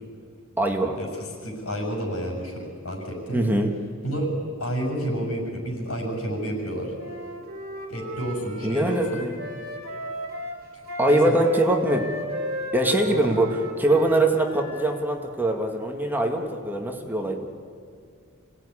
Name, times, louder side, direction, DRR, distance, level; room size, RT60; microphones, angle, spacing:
voice 1, 0.6-1.0 3.3-3.7 8.6-9.4 11.0-12.1 12.7-17.5, right 1 dB, 10° right, 3 dB, 1.7 m, -23 dB
voice 2, 1.4-3.4 4.0-4.3 4.6-6.9 7.9-9.3 11.1-11.4 13.0-13.3, right 1 dB, 90° left, 2 dB, 6.6 m, -30 dB
Wind instrument woodwind instrument, 7.0-15.0, equal, 45° right, 3.8 m, -34 dB
26.5 x 17.5 x 9.9 m, 2.2 s
head